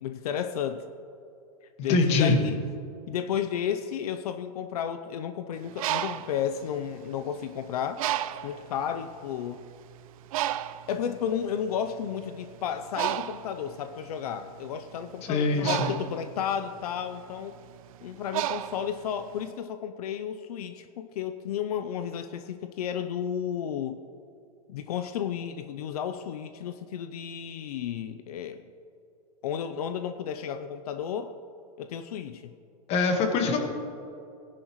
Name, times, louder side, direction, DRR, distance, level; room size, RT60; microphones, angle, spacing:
voice 1, 0.0-0.9 1.8-2.6 3.1-8.0 8.4-9.6 10.9-17.5 18.0-24.0 24.7-28.6 29.4-31.3 31.8-32.5, left 8 dB, 75° left, 9 dB, 0.6 m, -33 dB
voice 2, 1.9-2.4 15.2-15.9 32.9-33.6, left 3 dB, 35° left, 4 dB, 1.6 m, -23 dB
Bird, 5.6-7.4 8.0-8.7 9.3-9.5 9.7-19.5, right 12 dB, 65° right, 0.5 m, -33 dB
18.5 x 10.5 x 3.1 m, 2.6 s
supercardioid pair, 145°, 19 cm